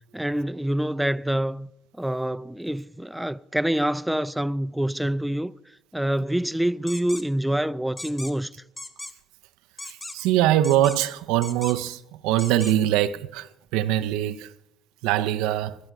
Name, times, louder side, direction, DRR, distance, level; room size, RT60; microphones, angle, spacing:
voice 1, 0.1-1.7 2.0-5.5 5.9-8.5, right 1 dB, 5° right, 0.4 m, -26 dB
sound 1, 6.9-7.2 8.0-8.3 8.8-9.1 9.8-10.3 10.6-11.1 11.4-11.9 12.4-12.7, left 2 dB, 25° left, 1.3 m, -38 dB
voice 2, 9.9-14.5 15.0-15.8, right 12 dB, 75° right, 0.5 m, -23 dB
20.5 x 13.0 x 3.5 m
hypercardioid pair, 50°, 0 cm